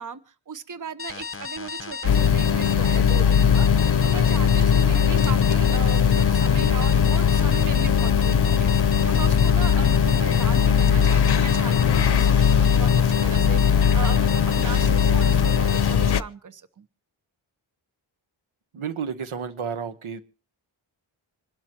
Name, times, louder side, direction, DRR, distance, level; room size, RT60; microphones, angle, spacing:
voice 1, 0.0-16.9, right 5 dB, 40° right, 1.0 m, -37 dB
sound 1, 1.0-15.9, left 4 dB, 25° left, 1.0 m, -35 dB
sound 2, 2.0-16.2, left 7 dB, 55° left, 0.7 m, -19 dB
voice 2, 18.7-20.2, right 7 dB, 85° right, 1.2 m, -31 dB
26.5 x 12.0 x 2.9 m
wide cardioid pair, 85°, 48 cm